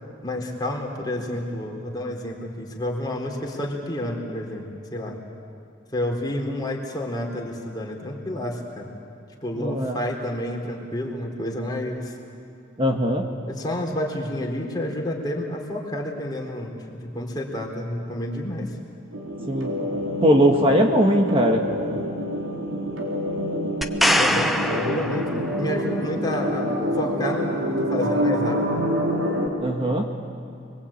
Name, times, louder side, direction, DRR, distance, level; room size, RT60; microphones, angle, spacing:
voice 1, 0.2-5.2 5.9-8.8 9.4-12.1 13.5-18.8 24.2-26.7 26.9-28.6, left 1 dB, 20° left, -1 dB, 4.0 m, -29 dB
voice 2, 9.6-10.0 12.8-13.2 19.5-19.7 20.2-21.6 29.6-30.1, equal, 25° right, 2 dB, 1.6 m, -20 dB
sound 1, 19.1-29.5, equal, 80° right, 4.4 m, -27 dB
sound 2, 23.8-25.8 29.5-29.6, equal, ahead, 1.0 m, -23 dB
30.0 x 22.5 x 8.7 m, 2.5 s
head